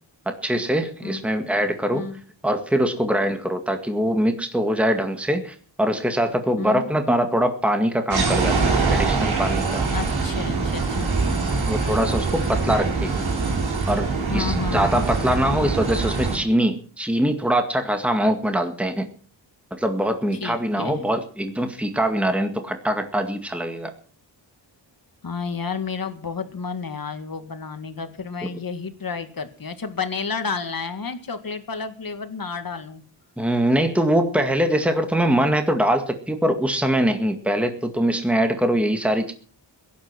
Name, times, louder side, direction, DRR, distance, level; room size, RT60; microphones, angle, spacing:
voice 1, 0.3-2.0 2.4-9.8 11.7-13.3 13.9-19.1 19.7-23.9 28.4-28.5 33.4-39.3, right 1 dB, 5° right, 6 dB, 1.9 m, -23 dB
voice 2, 6.6-6.9 9.9-11.1 14.3-15.0 20.4-21.0 25.2-33.0, left 5 dB, 50° left, 8 dB, 2.1 m, -31 dB
sound 1, 8.1-16.4, right 4 dB, 90° right, 4.4 m, -23 dB
17.5 x 11.5 x 6.1 m, 0.43 s
wide cardioid pair, 115°, 45 cm